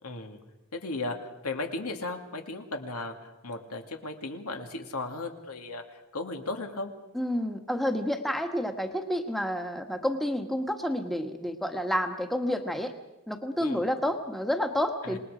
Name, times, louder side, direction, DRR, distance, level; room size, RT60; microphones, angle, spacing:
voice 1, 0.0-0.4 0.7-6.9 13.6-13.8 15.0-15.2, left 2 dB, 85° left, 4 dB, 2.4 m, -36 dB
voice 2, 7.1-12.9 13.3-15.2, equal, ahead, 4 dB, 1.3 m, -29 dB
27.5 x 20.0 x 5.0 m, 0.97 s
head